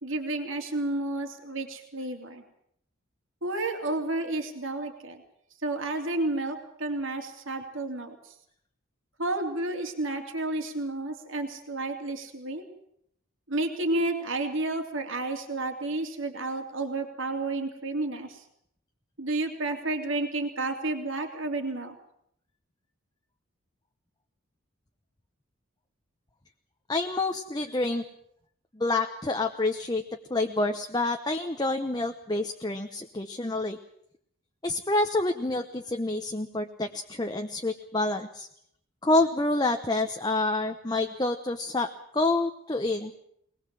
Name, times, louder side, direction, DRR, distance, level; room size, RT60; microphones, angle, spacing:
voice 1, 0.0-2.4 3.4-5.2 5.6-8.2 9.2-12.6 13.5-18.4 19.2-21.9, right 2 dB, 70° right, 4 dB, 3.0 m, -31 dB
voice 2, 26.9-28.0 28.7-30.0 30.3-33.8 34.6-38.5 39.0-43.1, left 2 dB, 20° left, 5 dB, 0.9 m, -28 dB
22.0 x 20.0 x 7.6 m, 0.71 s
head